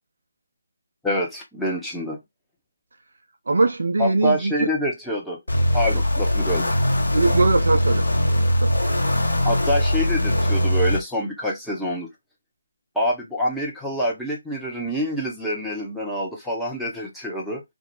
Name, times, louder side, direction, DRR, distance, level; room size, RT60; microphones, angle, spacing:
voice 1, 1.0-2.2 4.0-5.4 5.7-6.7 9.4-12.1 13.0-17.6, equal, ahead, 0.5 m, -26 dB
voice 2, 3.5-4.7 7.1-8.0 8.6-8.7, right 3 dB, 55° right, 0.4 m, -21 dB
sound 1, 5.5-11.0, equal, 65° left, 0.9 m, -21 dB
2.3 x 2.1 x 2.9 m
figure-of-eight pair, 150°, 0 cm